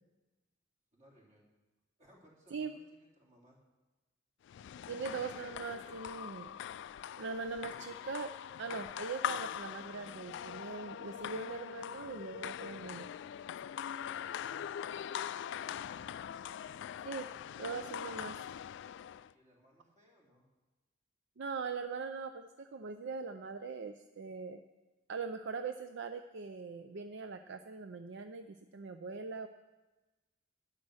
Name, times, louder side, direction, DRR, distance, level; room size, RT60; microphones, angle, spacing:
voice 1, 0.9-1.5 2.0-3.6 12.6-12.7 14.1-15.1 19.3-20.5, equal, 40° right, -3 dB, 3.3 m, -64 dB
sound 1, 4.5-19.3, left 9 dB, 65° left, 0.3 m, -42 dB
voice 2, 4.9-6.6 7.2-8.3 8.6-13.1 17.0-17.3 17.6-18.4 21.4-24.6 25.1-29.5, right 4 dB, 65° right, 8 dB, 0.5 m, -41 dB
11.5 x 9.8 x 6.3 m, 1.2 s
head